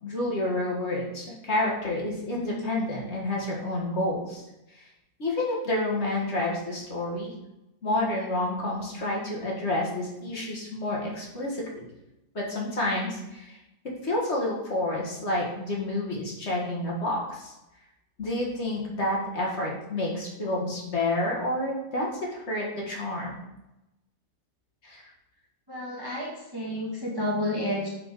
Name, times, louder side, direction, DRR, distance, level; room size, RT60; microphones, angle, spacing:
voice 1, 0.0-4.4 4.7-4.9 5.2-7.3 7.8-11.9 12.3-13.6 14.0-17.5 18.2-23.4 24.8-25.0, left 1 dB, 45° left, -3 dB, 1.8 m, -29 dB
voice 2, 25.7-27.9, left 1 dB, 15° right, -3 dB, 1.1 m, -30 dB
7.4 x 4.1 x 4.8 m, 0.93 s
omnidirectional pair, 1.6 m